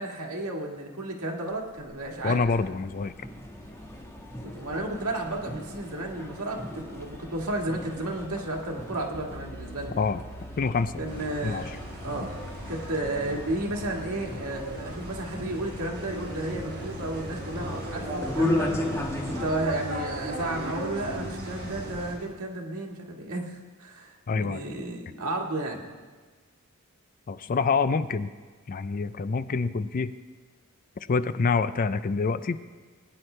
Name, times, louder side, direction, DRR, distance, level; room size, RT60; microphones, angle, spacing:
voice 1, 0.0-2.4 4.4-10.0 11.0-11.6 12.0-12.3 12.7-18.7 19.3-25.8, right 2 dB, 85° right, 0 dB, 1.8 m, -33 dB
sound 1, 1.5-19.5, left 1 dB, 10° left, 1.2 m, -37 dB
voice 2, 2.2-3.1 10.0-10.2 10.6-10.9 11.4-11.6 12.2-12.3 24.3-24.6 27.3-28.3 28.7-30.1 31.1-32.6, left 4 dB, 40° left, 13 dB, 0.4 m, -26 dB
sound 2, 3.6-18.3, right 1 dB, 60° left, 1.6 m, -50 dB
sound 3, 11.1-22.1, equal, 50° right, 4.0 m, -37 dB
20.0 x 9.5 x 3.3 m, 1.4 s
head